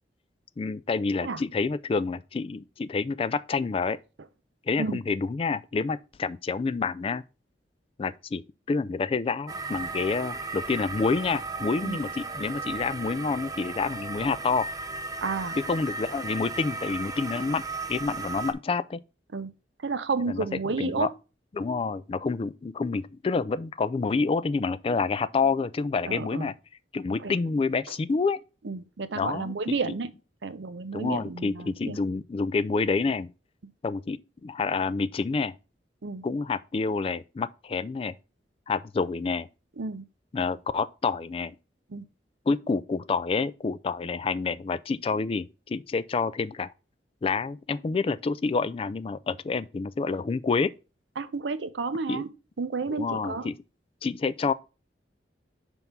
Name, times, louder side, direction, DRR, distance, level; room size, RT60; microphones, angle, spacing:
voice 1, 0.6-4.0 4.7-7.2 8.0-8.4 8.7-14.7 15.6-17.6 17.9-19.0 20.3-20.4 20.8-21.1 21.5-26.5 26.9-28.4 29.1-29.5 30.9-33.3 33.8-35.5 36.2-38.1 38.7-39.5 40.3-41.5 42.5-46.7 47.2-50.7 52.1-52.2 52.9-53.5 54.0-54.5, left 4 dB, 30° left, 0.3 m, -28 dB
sound 1, 9.5-18.5, right 3 dB, 20° right, 0.6 m, -36 dB
voice 2, 15.2-15.5 19.3-19.5 19.8-21.1 26.0-26.5 27.2-27.3 28.6-30.1 30.4-32.0 36.0-36.2 39.8-40.0 41.9-42.0 51.2-52.3 52.6-53.5, right 4 dB, 85° right, 0.6 m, -31 dB
5.4 x 3.6 x 5.8 m
head